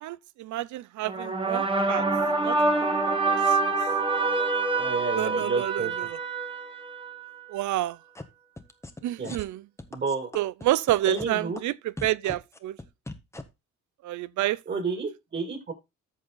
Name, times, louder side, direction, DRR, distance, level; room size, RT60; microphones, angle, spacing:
voice 1, 0.0-2.0 2.4-2.6 3.0-3.4 3.6-3.7 5.2-6.2 7.5-8.0 9.0-9.6 10.3-12.8 14.0-14.6, right 14 dB, 75° right, 0.6 m, -29 dB
sound 1, 1.1-7.4, right 3 dB, 15° right, 2.0 m, -26 dB
voice 2, 4.8-5.9 9.2-9.3 9.9-10.3 11.1-11.6 14.7-15.7, right 4 dB, 35° right, 6.1 m, -30 dB
sound 2, 8.2-8.3 8.6-9.0 9.2-9.4 9.8-11.3 11.6-11.7 12.0-13.4, left 2 dB, 10° left, 1.4 m, -38 dB
14.0 x 4.7 x 3.9 m
cardioid pair, 90°, 30 cm